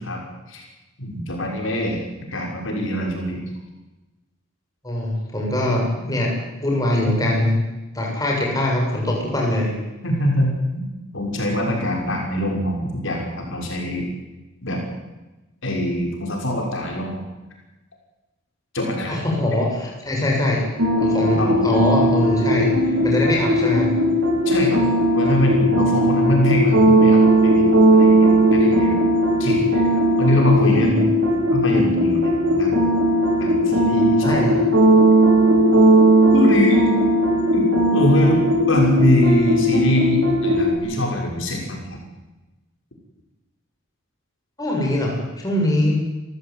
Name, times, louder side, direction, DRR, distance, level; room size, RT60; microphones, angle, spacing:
voice 1, 1.0-2.0 2.3-3.5 7.0-7.2 10.0-14.1 14.6-14.8 15.6-17.2 18.7-19.2 21.4-21.7 24.4-24.9 25.1-28.9 29.4-31.1 31.5-32.8 33.4-34.5 36.3-36.9 37.5-37.6 37.9-42.0, left 1 dB, 60° left, 0 dB, 6.5 m, -22 dB
voice 2, 4.8-6.3 6.6-7.6 7.9-9.7 19.1-20.6 21.0-23.9 34.2-34.5 44.6-46.0, left 1 dB, 15° left, -2 dB, 7.4 m, -22 dB
sound 1, 20.8-40.7, right 1 dB, 90° right, 5.3 m, -17 dB
29.0 x 15.0 x 9.6 m, 1.1 s
head